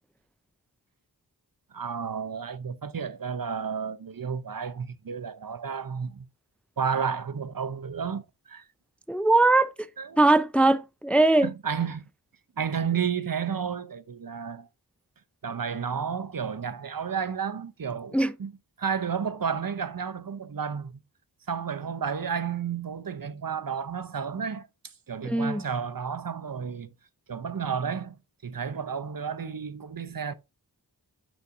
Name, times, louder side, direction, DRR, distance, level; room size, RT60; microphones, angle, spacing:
voice 1, 1.7-6.3 6.8-8.6 10.0-10.2 11.4-12.0 12.6-14.7 15.4-18.5 18.8-21.0 21.5-24.7 25.1-26.9 27.3-28.2 28.4-30.3, right 6 dB, 55° right, 0.8 m, -32 dB
voice 2, 9.1-9.7 10.2-11.5 18.1-18.3 25.2-25.6, right 2 dB, 5° left, 0.5 m, -20 dB
9.9 x 5.7 x 2.7 m
wide cardioid pair, 50°, 41 cm